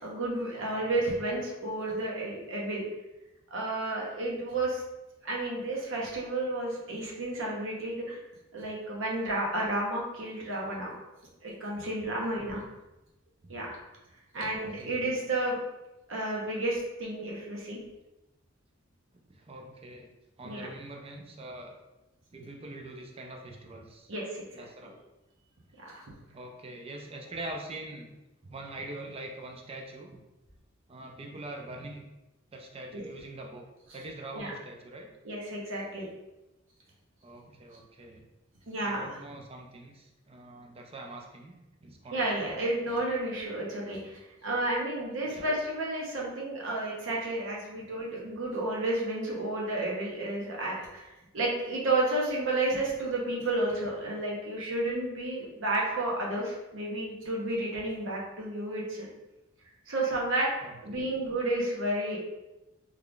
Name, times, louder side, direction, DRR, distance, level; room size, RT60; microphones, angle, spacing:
voice 1, 0.0-2.8 3.5-4.8 5.2-8.2 8.5-10.9 11.4-12.6 13.5-13.8 14.3-15.6 16.1-17.8 20.4-20.7 24.1-24.6 25.8-26.0 32.9-33.0 34.3-34.5 35.2-36.1 38.7-39.1 42.1-51.0 51.3-59.1 59.9-62.2, right 2 dB, 65° right, -3 dB, 0.9 m, -31 dB
voice 2, 0.5-1.0 12.3-12.6 13.4-13.6 14.3-15.0 19.3-20.1 20.4-21.8 22.3-24.1 24.5-24.9 26.3-28.1 28.4-30.2 30.9-32.0 32.5-33.7 33.9-35.2 37.2-38.3 38.8-42.4 45.2-45.5 60.6-61.1, right 2 dB, 30° right, 2 dB, 0.5 m, -44 dB
3.2 x 2.4 x 3.7 m, 1.0 s
head